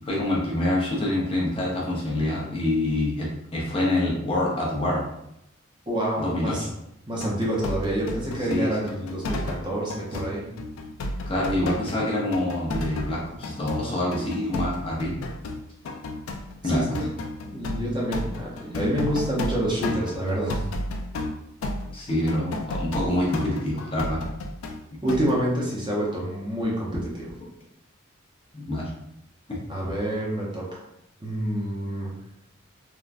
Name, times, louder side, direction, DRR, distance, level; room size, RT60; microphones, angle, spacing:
voice 1, 0.1-5.0 6.2-6.5 8.5-8.8 11.3-15.2 16.6-17.0 21.9-24.2 28.5-28.9 29.5-29.6, left 1 dB, 25° left, -4 dB, 0.6 m, -26 dB
voice 2, 5.9-6.7 7.1-10.5 16.6-17.1 17.4-20.6 25.0-27.3 29.7-30.7 31.2-32.1, right 1 dB, 20° right, -4 dB, 0.6 m, -27 dB
sound 1, 7.2-9.6 9.9-12.0 12.3-24.8 25.1-25.4, left 1 dB, 80° left, 0.4 m, -32 dB
3.3 x 2.1 x 2.4 m, 0.80 s
head